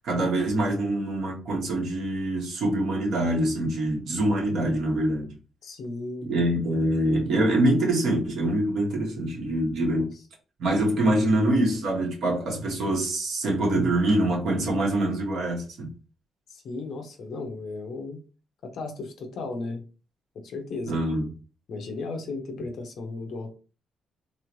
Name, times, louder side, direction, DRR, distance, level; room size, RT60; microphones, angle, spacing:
voice 1, 0.0-5.3 6.3-10.1 10.6-15.9 20.9-21.3, right 1 dB, 55° right, 1.8 m, -24 dB
voice 2, 5.6-6.3 9.8-10.1 16.5-18.2 18.6-19.8 20.4-21.0 21.7-23.5, left 3 dB, 55° left, 0.9 m, -35 dB
3.6 x 3.2 x 3.1 m
cardioid pair, 180°, 0 cm